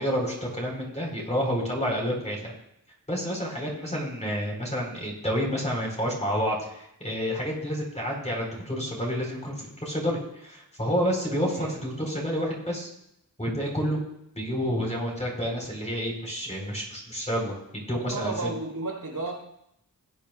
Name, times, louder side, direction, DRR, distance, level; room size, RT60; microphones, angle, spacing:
voice 1, 0.0-2.5 3.1-12.9 13.4-14.0 14.3-18.5, equal, 20° left, -2 dB, 4.2 m, -29 dB
voice 2, 18.0-19.3, right 3 dB, 70° right, -2 dB, 4.0 m, -33 dB
18.5 x 9.2 x 2.4 m, 0.77 s
wide cardioid pair, 65°, 36 cm